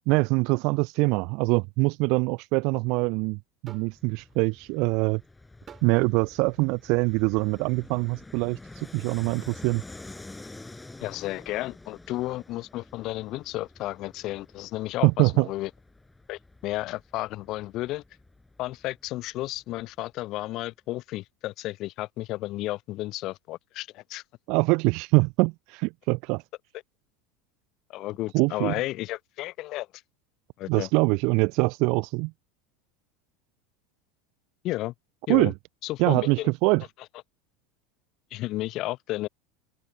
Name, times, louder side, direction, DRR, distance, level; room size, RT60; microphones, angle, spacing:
voice 1, 0.1-5.2 5.8-9.8 15.0-15.5 24.5-26.4 28.3-28.7 30.7-32.3 35.3-35.5 36.0-36.8, right 28 dB, 50° right, 0.8 m, -24 dB
sound 1, 3.7-4.0 5.7-6.0 7.0-7.2, right 8 dB, 30° right, 3.5 m, -48 dB
Fixed-wing aircraft airplane, 3.9-20.1, left 2 dB, 10° left, 7.1 m, -48 dB
voice 2, 11.0-15.7 16.3-18.0 18.6-24.2 27.9-29.9 30.6-30.9 34.6-34.9 35.3-35.5 35.8-36.5 38.3-39.3, left 17 dB, 45° left, 0.7 m, -32 dB
open air
figure-of-eight pair, 75°, 0 cm